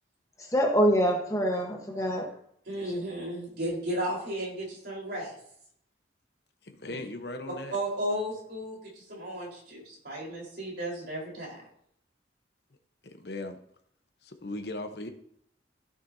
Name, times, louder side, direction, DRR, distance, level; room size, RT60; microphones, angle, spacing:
voice 1, 0.4-2.3 2.8-3.0, equal, 15° left, 1 dB, 1.2 m, -25 dB
voice 2, 2.7-5.4 7.7-11.7, right 1 dB, 65° right, -3 dB, 4.2 m, -34 dB
voice 3, 6.6-7.8 13.0-13.6 14.2-15.1, left 2 dB, 65° left, 6 dB, 1.0 m, -38 dB
15.0 x 6.5 x 2.8 m, 0.68 s
head